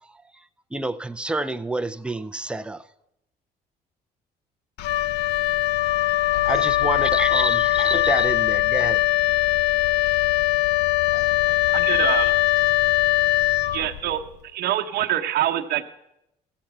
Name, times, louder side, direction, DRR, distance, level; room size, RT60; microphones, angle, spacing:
voice 1, 0.7-2.8 6.4-9.0, right 2 dB, 5° right, 8 dB, 0.5 m, -28 dB
Wind instrument woodwind instrument, 4.8-14.3, left 16 dB, 85° left, 0.4 m, -21 dB
voice 2, 10.0-10.5 11.1-11.9 12.5-12.9, left 2 dB, 65° left, 0 dB, 5.1 m, -44 dB
voice 3, 11.7-12.3 13.7-14.2 14.5-15.8, right 12 dB, 70° right, 6 dB, 0.9 m, -25 dB
15.0 x 7.8 x 5.9 m, 0.83 s
cardioid pair, 110°, 17 cm